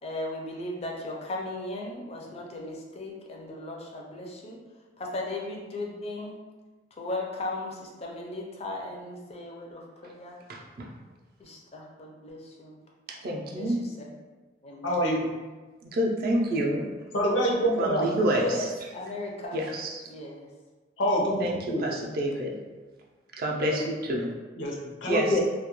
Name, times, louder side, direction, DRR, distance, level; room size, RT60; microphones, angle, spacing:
voice 1, 0.0-4.6 5.0-6.4 7.0-10.3 11.4-12.8 13.5-14.1 14.6-15.0 18.3-19.6 20.1-20.5, left 2 dB, 35° left, -1 dB, 0.4 m, -37 dB
voice 2, 10.5-10.9 13.1-13.8 15.8-17.1 17.8-18.7 19.5-20.0 21.4-22.6 23.4-24.3 25.0-25.4, right 1 dB, 55° right, 0 dB, 0.4 m, -28 dB
voice 3, 14.8-15.2 17.1-18.0 21.0-21.4 21.7-21.8 24.6-25.4, equal, 80° left, -2 dB, 0.6 m, -25 dB
2.2 x 2.1 x 2.9 m, 1.3 s
head